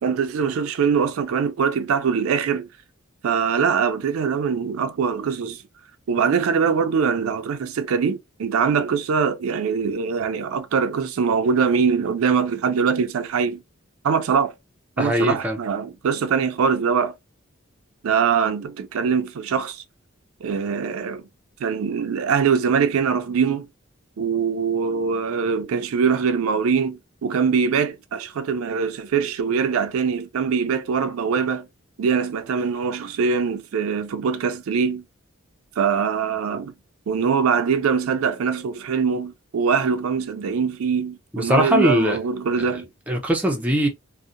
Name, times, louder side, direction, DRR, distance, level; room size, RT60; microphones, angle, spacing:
voice 1, 0.0-2.7 3.2-5.6 6.1-13.6 14.0-14.5 15.0-17.1 18.0-19.8 20.4-21.2 21.6-23.7 24.2-31.7 32.0-35.0 35.8-36.7 37.1-42.9, right 6 dB, 85° right, 0.4 m, -22 dB
voice 2, 15.0-15.6 41.3-42.2 42.6-42.7 43.1-43.9, equal, 5° right, 0.4 m, -21 dB
2.7 x 2.1 x 2.4 m
head